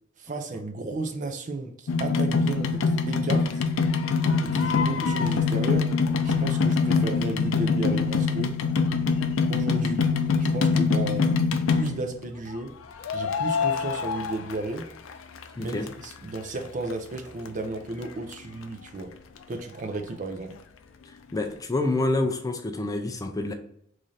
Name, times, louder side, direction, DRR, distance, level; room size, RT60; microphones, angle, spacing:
voice 1, 0.2-3.6 4.4-5.9 6.2-8.6 9.5-11.3 11.7-12.8 13.1-14.9 15.6-19.2 19.5-20.6, right 2 dB, 40° right, 0.5 m, -33 dB
sound 1, 1.9-12.2 13.0-15.1 15.4-16.4 16.9-17.0 17.2-17.3 17.5-17.6 18.0-18.1 18.3-18.4, left 4 dB, 90° left, 0.4 m, -24 dB
voice 2, 15.6-15.9 21.3-23.5, left 2 dB, 20° left, 0.3 m, -27 dB
3.2 x 2.5 x 4.0 m
head